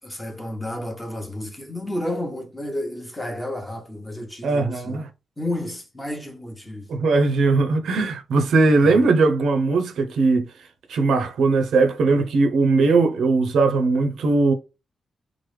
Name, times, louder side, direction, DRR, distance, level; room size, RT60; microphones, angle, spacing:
voice 1, 0.0-5.0 5.4-6.9 8.8-9.1, left 1 dB, 10° left, 0.8 m, -31 dB
voice 2, 4.4-5.1 6.9-10.4 10.9-14.5, right 3 dB, 85° right, 0.5 m, -19 dB
3.1 x 2.0 x 3.2 m
wide cardioid pair, 125°, 0 cm